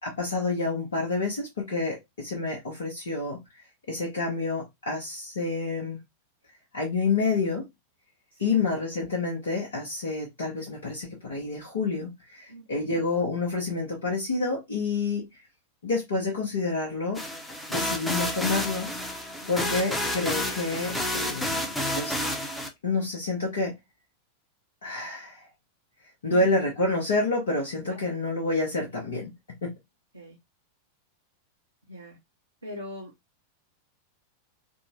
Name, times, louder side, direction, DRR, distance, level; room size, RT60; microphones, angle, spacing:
voice 1, 0.0-6.0 6.7-7.7 8.4-15.4 15.8-17.2 17.7-18.9 19.5-21.7 22.0-22.2 22.8-23.7 24.8-25.5 26.2-29.3 29.6-29.7, left 3 dB, 65° left, 0.9 m, -28 dB
voice 2, 12.5-13.0 19.4-19.6 26.3-26.5 27.9-28.0 30.1-30.4 31.9-32.2 32.6-33.1, equal, 80° right, 0.7 m, -41 dB
sound 1, 17.1-22.7, left 1 dB, 5° left, 0.7 m, -30 dB
3.6 x 2.1 x 2.6 m
figure-of-eight pair, 90°, 0 cm